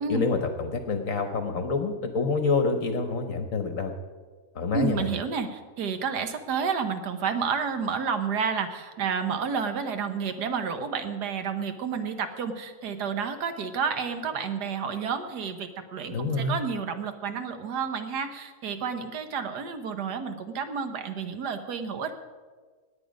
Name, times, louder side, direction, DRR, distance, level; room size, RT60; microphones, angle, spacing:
voice 1, 0.1-3.9 4.5-5.1 16.1-16.6, left 4 dB, 50° left, 7 dB, 1.2 m, -27 dB
voice 2, 4.7-22.1, right 6 dB, 65° right, 8 dB, 1.5 m, -30 dB
19.0 x 8.8 x 5.2 m, 1.5 s
omnidirectional pair, 2.0 m